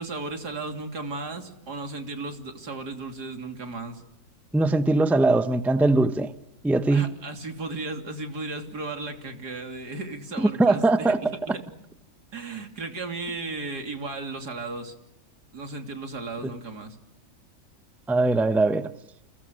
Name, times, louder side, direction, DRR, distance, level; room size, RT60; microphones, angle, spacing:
voice 1, 0.0-4.0 6.9-11.6 12.3-14.9 15.5-17.0, right 3 dB, 85° right, 3.6 m, -35 dB
voice 2, 4.5-6.3 6.6-7.0 10.4-11.2 18.1-18.8, right 2 dB, ahead, 0.8 m, -21 dB
30.0 x 29.0 x 6.4 m
omnidirectional pair, 1.7 m